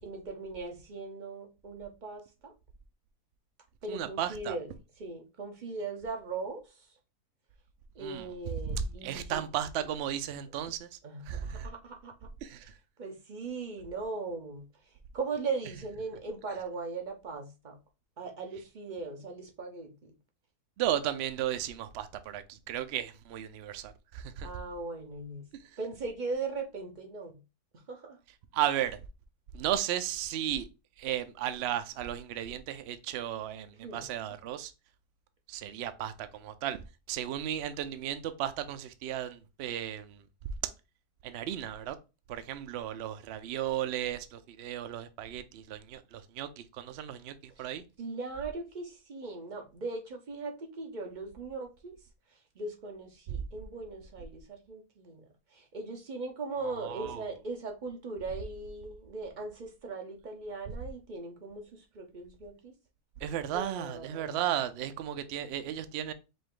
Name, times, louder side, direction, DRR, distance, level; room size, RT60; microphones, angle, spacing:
voice 1, 0.0-2.5 3.8-6.9 7.9-9.5 11.0-12.3 12.6-12.7 13.0-14.7 15.1-17.8 18.2-20.1 24.4-25.4 25.8-27.4 27.9-28.2 33.8-34.1 47.6-47.7 48.0-52.0 52.6-55.2 55.5-62.7 63.5-64.4, right 3 dB, 45° right, 0.6 m, -39 dB
voice 2, 3.9-4.6 8.0-8.3 8.6-11.0 11.3-11.7 12.4-12.7 20.8-24.5 28.5-29.0 29.5-30.7 31.0-34.7 35.5-36.8 37.1-40.2 41.2-42.0 42.3-47.8 56.6-57.2 63.2-66.1, right 11 dB, 80° right, 0.5 m, -35 dB
5.1 x 2.6 x 3.7 m
omnidirectional pair, 1.7 m